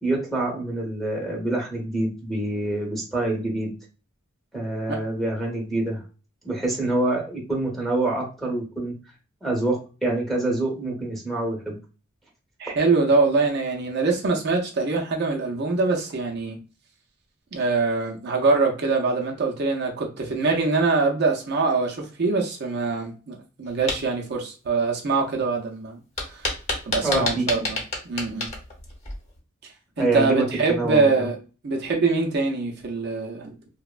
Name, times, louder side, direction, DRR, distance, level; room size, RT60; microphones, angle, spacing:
voice 1, 0.0-3.7 4.5-6.0 6.4-8.9 9.4-11.8 27.0-27.6 30.0-31.3, right 2 dB, ahead, 0.8 m, -26 dB
voice 2, 12.6-16.6 17.5-26.0 26.3-26.4 26.9-27.8 28.1-28.5 30.0-31.4 31.6-33.5, right 3 dB, 55° right, 0.5 m, -23 dB
sound 1, 23.7-24.0 26.2-29.4, left 2 dB, 35° left, 0.8 m, -29 dB
2.9 x 2.0 x 2.3 m
head